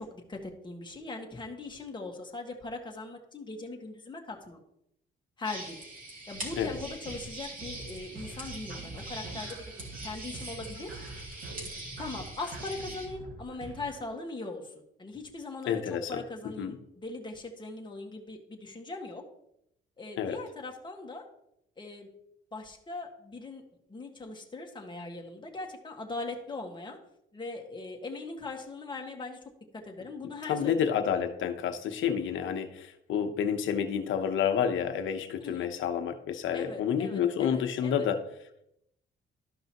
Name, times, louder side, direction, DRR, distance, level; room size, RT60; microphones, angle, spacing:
voice 1, 0.0-4.6 5.4-5.8 6.3-10.9 11.6-14.7 15.0-19.2 20.0-21.2 21.8-22.1 22.5-23.6 23.9-27.0 27.3-29.4 29.7-30.8 35.4-35.7 36.5-38.1, left 3 dB, 25° left, 1 dB, 1.7 m, -40 dB
sound 1, 5.4-13.1, right 1 dB, 40° right, 2.6 m, -43 dB
sound 2, 6.3-14.0, right 3 dB, 75° right, 2.0 m, -45 dB
voice 2, 15.7-16.2 16.6-16.8 20.2-20.4 30.5-38.2, left 8 dB, 75° left, 6 dB, 1.0 m, -29 dB
13.0 x 5.5 x 3.0 m, 0.78 s
cardioid pair, 90°, 20 cm